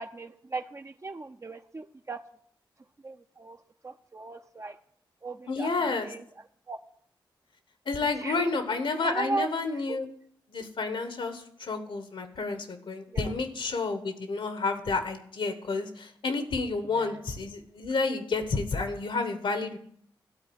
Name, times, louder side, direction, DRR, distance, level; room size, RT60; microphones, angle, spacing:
voice 1, 0.0-2.2 3.0-3.6 3.8-4.8 5.2-6.2 6.7-6.8 8.0-8.5 8.9-9.5 9.9-10.0 13.1-13.3 16.9-17.2, right 3 dB, 35° right, 7 dB, 0.6 m, -37 dB
voice 2, 5.5-6.1 7.9-10.1 10.5-19.8, left 3 dB, 75° left, 8 dB, 1.2 m, -30 dB
12.5 x 4.2 x 8.0 m, 0.66 s
cardioid pair, 45°, 9 cm